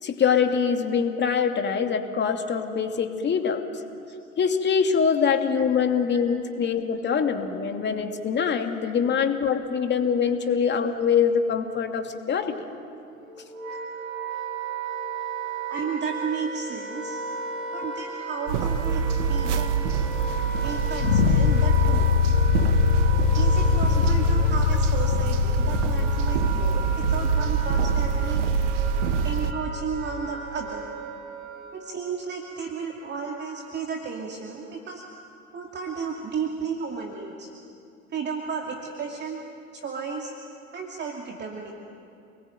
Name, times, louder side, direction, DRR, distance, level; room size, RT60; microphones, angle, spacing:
voice 1, 0.0-3.6 4.4-12.5, left 6 dB, 25° left, 5 dB, 2.6 m, -24 dB
Wind instrument woodwind instrument, 13.1-31.9, right 4 dB, 75° right, 4.1 m, -35 dB
voice 2, 15.7-17.2 17.7-19.8 20.6-22.1 23.3-26.8 27.1-28.4 29.2-30.9 31.7-35.1 35.5-37.5 38.1-39.4 39.7-40.3 40.7-41.7, right 5 dB, 25° right, 0 dB, 2.7 m, -33 dB
sound 1, 18.5-29.5, right 6 dB, 60° right, 1.6 m, -25 dB
sound 2, 21.0-30.0, left 13 dB, 55° left, 0.6 m, -24 dB
29.0 x 21.0 x 9.3 m, 2.6 s
figure-of-eight pair, 80°, 41 cm